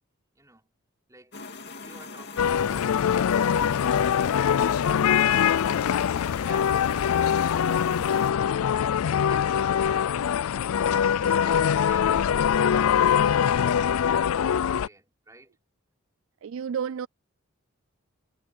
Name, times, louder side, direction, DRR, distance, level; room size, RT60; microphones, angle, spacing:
voice 1, 0.3-0.7 1.1-5.0 6.4-7.6 8.4-10.1 10.7-15.5, right 1 dB, 15° right, 5.2 m, -51 dB
sound 1, 1.3-8.3, left 4 dB, 50° left, 2.5 m, -41 dB
sound 2, 2.4-14.9, left 8 dB, 85° left, 0.4 m, -23 dB
voice 2, 16.4-17.1, right 7 dB, 65° right, 0.3 m, -31 dB
head